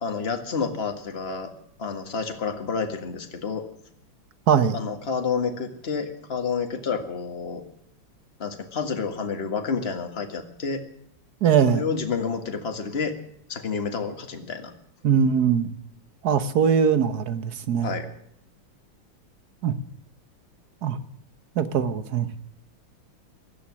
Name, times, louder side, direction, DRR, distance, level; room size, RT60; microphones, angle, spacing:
voice 1, 0.0-1.5 1.8-3.7 4.7-7.6 8.4-10.8 11.7-13.2 13.5-14.7 17.8-18.1, left 5 dB, 30° left, 6 dB, 1.9 m, -29 dB
voice 2, 4.5-4.8 11.4-11.8 15.0-15.7 16.2-17.9 19.6-19.8 20.8-21.0 21.6-22.3, right 7 dB, 55° right, 13 dB, 1.5 m, -21 dB
17.0 x 13.0 x 6.2 m, 0.70 s
omnidirectional pair, 2.2 m